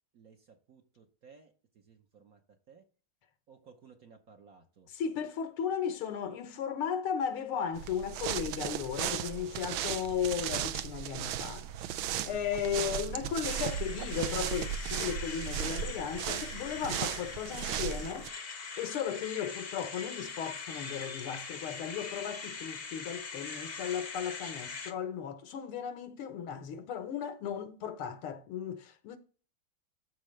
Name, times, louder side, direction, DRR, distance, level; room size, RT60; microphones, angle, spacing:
voice 1, 0.1-2.4 2.7-2.8 3.5-4.9, right 5 dB, 50° right, 1.2 m, -58 dB
voice 2, 4.9-11.7 12.2-18.3 18.8-29.2, left 8 dB, 80° left, 1.9 m, -35 dB
sound 1, 7.7-18.3, right 10 dB, 75° right, 1.4 m, -36 dB
sound 2, 13.4-24.9, left 5 dB, 40° left, 0.8 m, -42 dB
13.0 x 4.7 x 3.2 m
omnidirectional pair, 2.4 m